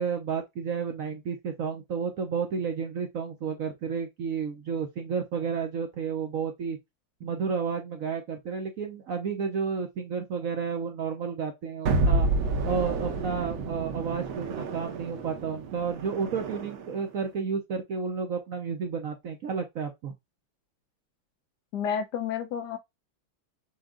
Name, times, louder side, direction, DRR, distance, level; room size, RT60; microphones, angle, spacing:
voice 1, 0.0-6.8 7.2-12.3 12.6-20.1, right 6 dB, 60° right, 0.9 m, -31 dB
sound 1, 11.9-17.0, right 3 dB, 80° right, 1.6 m, -29 dB
voice 2, 21.7-22.8, left 7 dB, 70° left, 1.1 m, -30 dB
6.2 x 2.3 x 3.7 m
omnidirectional pair, 2.1 m